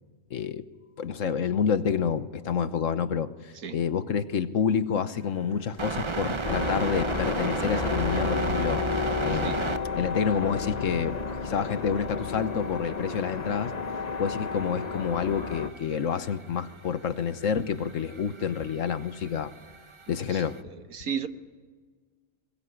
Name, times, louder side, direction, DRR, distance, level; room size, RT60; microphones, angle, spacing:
voice 1, 0.3-0.7 1.0-8.8 9.2-9.6 9.9-13.7 14.2-19.5 20.1-20.6, left 7 dB, 65° left, 1.4 m, -28 dB
sound 1, 5.8-9.8 10.2-11.1 11.3-11.4 11.7-13.5 13.9-20.6, right 3 dB, 25° right, 0.8 m, -35 dB
sound 2, 6.4-15.7, left 4 dB, 30° left, 1.0 m, -31 dB
voice 2, 9.3-9.6 20.3-21.3, right 7 dB, 85° right, 1.7 m, -35 dB
22.5 x 21.5 x 9.9 m
omnidirectional pair, 1.5 m